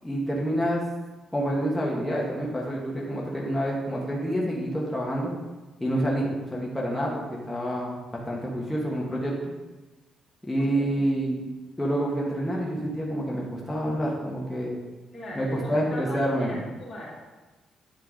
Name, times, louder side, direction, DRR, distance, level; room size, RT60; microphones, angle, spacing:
voice 1, 0.0-0.8 1.3-5.3 5.8-8.0 8.2-9.5 10.5-11.4 11.8-14.8 15.3-16.6, equal, 10° left, -4 dB, 1.6 m, -28 dB
voice 2, 10.6-11.0 15.1-17.2, equal, 40° left, -6 dB, 2.4 m, -40 dB
9.8 x 4.5 x 3.8 m, 1.2 s
cardioid pair, 90°, 0 cm